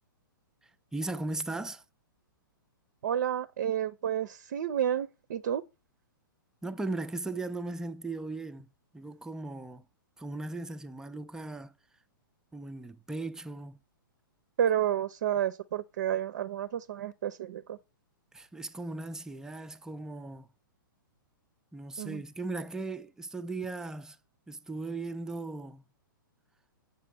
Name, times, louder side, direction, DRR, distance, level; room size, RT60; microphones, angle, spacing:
voice 1, 0.6-1.8 6.6-9.8 10.2-11.7 12.5-13.8 18.3-20.5 21.7-24.2 24.5-25.8, right 2 dB, 5° right, 0.5 m, -38 dB
voice 2, 3.0-5.6 14.6-17.8 22.0-22.2, right 10 dB, 50° right, 0.7 m, -30 dB
8.3 x 6.0 x 6.0 m
figure-of-eight pair, 110°, 12 cm